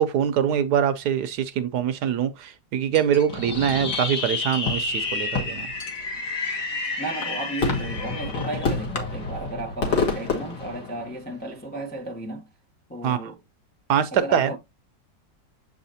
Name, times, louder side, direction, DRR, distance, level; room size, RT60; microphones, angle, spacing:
voice 1, 0.0-5.7 13.0-13.3 13.9-14.6, right 9 dB, 70° right, 1.0 m, -23 dB
Chink clink, 2.9-4.2 4.5-5.3 5.8-6.9 7.2-7.8 8.4-8.5 9.0-9.1, left 4 dB, 50° left, 1.6 m, -39 dB
Fireworks, 3.3-11.4, left 4 dB, 65° left, 2.5 m, -28 dB
voice 2, 7.0-12.5 12.9-13.4 14.1-14.6, right 2 dB, 10° left, 0.4 m, -34 dB
7.3 x 4.9 x 2.7 m
omnidirectional pair, 2.0 m